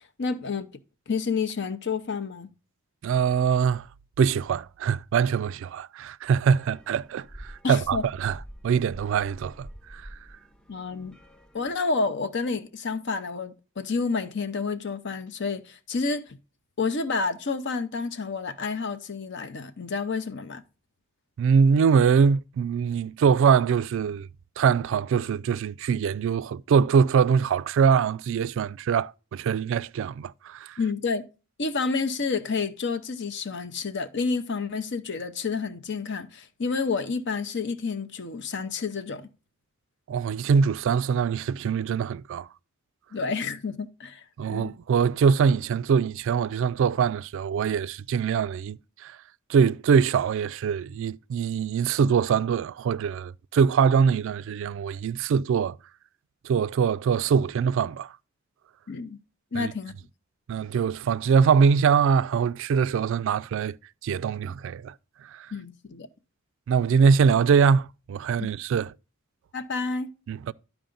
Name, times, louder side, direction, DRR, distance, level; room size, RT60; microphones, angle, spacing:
voice 1, 0.2-0.7 1.1-2.5 7.6-8.0 10.7-11.1 11.5-16.4 16.8-20.6 30.8-31.2 31.6-39.3 43.1-44.7 58.9-59.2 59.5-60.0 65.5-66.1 68.4-68.5 69.5-70.1, left 4 dB, 60° left, 0.7 m, -29 dB
voice 2, 3.0-3.9 4.2-8.4 8.6-10.1 21.4-24.3 24.6-30.8 40.1-42.5 44.4-49.2 49.5-55.8 56.4-58.1 59.5-59.7 60.5-63.8 64.0-64.9 65.3-65.5 66.7-68.9 70.3-70.5, right 6 dB, 65° right, 0.3 m, -23 dB
sound 1, 6.5-11.7, equal, 5° left, 0.5 m, -47 dB
11.5 x 4.7 x 3.8 m
head